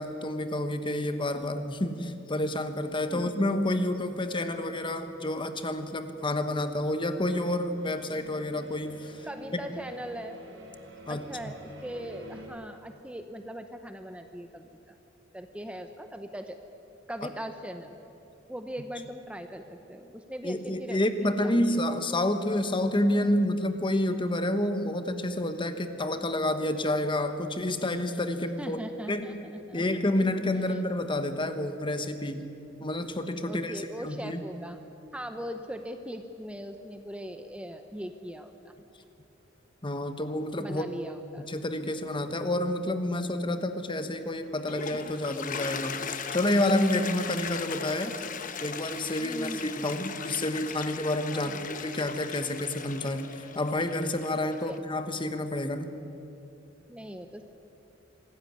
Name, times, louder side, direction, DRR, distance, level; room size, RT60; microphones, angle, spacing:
voice 1, 0.0-9.3 11.1-11.3 20.4-28.8 29.1-29.4 29.7-32.5 32.8-34.4 39.8-40.9 41.4-48.2 48.6-55.9, left 1 dB, 25° left, 9 dB, 1.2 m, -29 dB
sound 1, 7.4-12.5, right 1 dB, 70° right, 4.9 m, -49 dB
voice 2, 9.2-10.4 11.1-15.0 15.3-16.6 17.1-18.0 18.5-21.7 28.6-29.8 30.5-30.8 33.5-34.8 35.1-38.7 40.6-41.5 49.2-49.7 51.3-51.7 54.6-54.8 56.9-57.4, equal, 5° right, 7 dB, 0.8 m, -40 dB
Toilet flush, 44.4-54.8, left 6 dB, 45° left, 1.0 m, -38 dB
25.0 x 14.0 x 9.5 m, 3.0 s
head